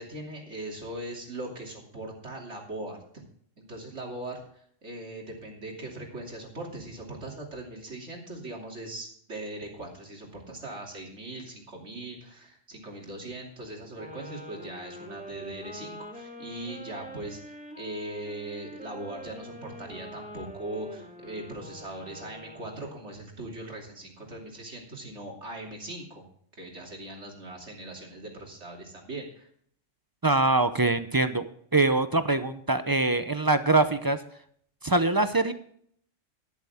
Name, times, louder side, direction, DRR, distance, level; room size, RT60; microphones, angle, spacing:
voice 1, 0.0-3.2 3.6-26.2 26.6-29.5, right 1 dB, 65° right, 0 dB, 3.3 m, -40 dB
sound 1, 13.9-23.1, equal, 5° right, 2.7 m, -44 dB
voice 2, 30.2-34.2 34.8-35.5, right 2 dB, 25° right, 11 dB, 0.5 m, -24 dB
12.0 x 12.0 x 3.6 m, 0.62 s
omnidirectional pair, 1.3 m